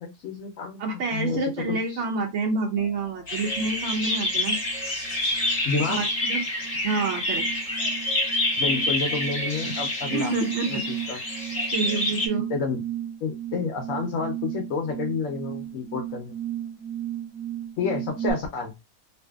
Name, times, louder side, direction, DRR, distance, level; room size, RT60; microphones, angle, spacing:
voice 1, 0.0-2.0 5.6-6.0 8.6-10.3 10.7-10.8 11.1-11.2 12.5-12.8 13.2-16.3 17.8-18.7, left 4 dB, 80° left, 2 dB, 1.0 m, -29 dB
voice 2, 0.8-4.6 6.0-6.4 6.8-7.7 10.1-10.8 11.7-12.5, right 3 dB, 65° right, 1 dB, 0.8 m, -28 dB
sound 1, 2.8-3.1 3.5-18.3, right 11 dB, 90° right, 1.3 m, -36 dB
sound 2, 3.3-12.3, left 1 dB, 35° left, 0.8 m, -27 dB
2.6 x 2.6 x 2.2 m, 0.23 s
omnidirectional pair, 1.4 m